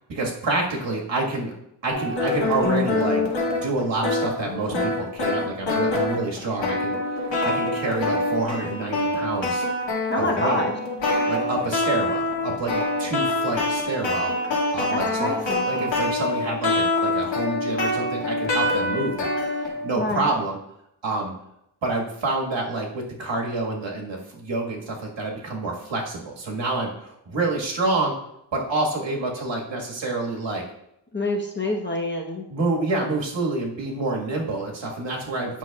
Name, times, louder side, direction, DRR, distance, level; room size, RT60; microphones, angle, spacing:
voice 1, 0.1-1.5 1.8-9.6 10.2-10.6 11.2-14.3 14.7-15.3 15.6-20.6 21.0-21.3 21.8-28.1 28.5-30.6 32.5-35.6, right 2 dB, 75° right, -1 dB, 1.7 m, -28 dB
sound 1, 1.9-19.9, left 2 dB, 70° left, 2.1 m, -25 dB
voice 2, 10.1-10.7 14.9-15.7 19.9-20.3 31.1-32.4, left 2 dB, 25° left, 0 dB, 1.0 m, -26 dB
9.6 x 6.2 x 2.4 m, 0.78 s
wide cardioid pair, 120°, 45 cm